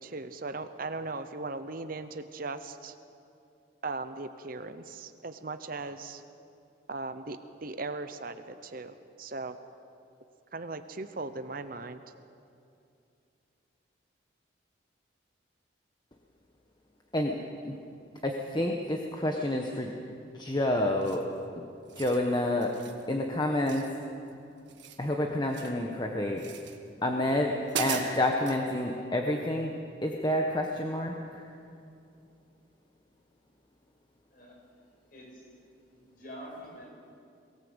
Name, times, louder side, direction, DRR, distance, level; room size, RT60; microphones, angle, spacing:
voice 1, 0.0-2.9 3.8-6.2 6.9-9.6 10.5-12.0, right 3 dB, 45° right, 10 dB, 0.9 m, -38 dB
voice 2, 18.2-19.9 20.3-21.3 21.9-22.8 23.1-23.9 25.0-26.4 27.0-29.7 30.0-31.5, left 1 dB, 20° left, 1 dB, 1.2 m, -29 dB
sound 1, 21.0-21.4 21.8-22.2 22.6-23.0 23.7-24.3 24.6-25.8 26.4-26.8 27.3-27.4 27.7-28.6, right 7 dB, 65° right, 1.9 m, -39 dB
voice 3, 34.3-34.7 35.1-35.5 35.9-36.9, equal, 45° left, -1 dB, 6.0 m, -46 dB
23.0 x 18.0 x 8.1 m, 2.6 s
head